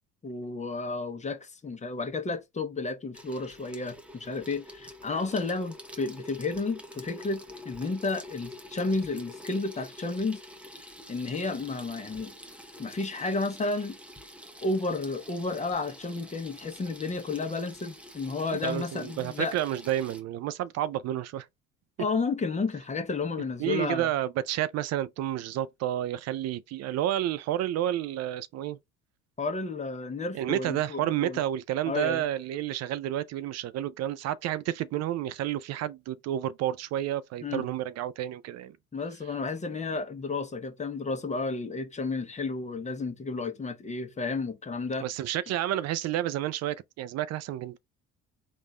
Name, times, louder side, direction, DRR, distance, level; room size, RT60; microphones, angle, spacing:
voice 1, 0.2-10.4 11.1-12.3 12.8-14.0 14.6-19.6 22.0-24.1 29.4-31.4 31.8-32.2 37.4-37.7 38.9-45.0, left 3 dB, 25° left, 0.9 m, -32 dB
Water tap faucet / Sink (filling or washing), 3.1-20.2, left 1 dB, 5° right, 0.8 m, -47 dB
voice 2, 18.6-21.5 23.6-28.8 30.3-38.8 45.0-47.8, right 12 dB, 60° right, 0.4 m, -30 dB
3.6 x 2.5 x 4.1 m
supercardioid pair, 95°, 30 cm